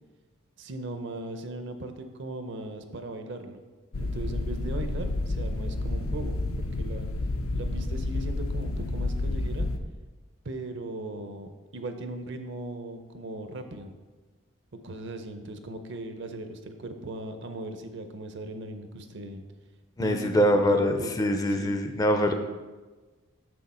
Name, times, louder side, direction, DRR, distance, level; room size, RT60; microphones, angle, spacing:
voice 1, 0.6-3.6 3.9-7.1 7.5-9.7 10.4-14.0 14.8-19.4 20.0-21.8, right 2 dB, 55° right, 7 dB, 0.6 m, -38 dB
sound 1, 3.9-9.8, left 2 dB, 85° left, 0.6 m, -30 dB
voice 2, 20.0-22.3, equal, 15° left, 5 dB, 0.4 m, -24 dB
6.4 x 6.3 x 4.2 m, 1.3 s
head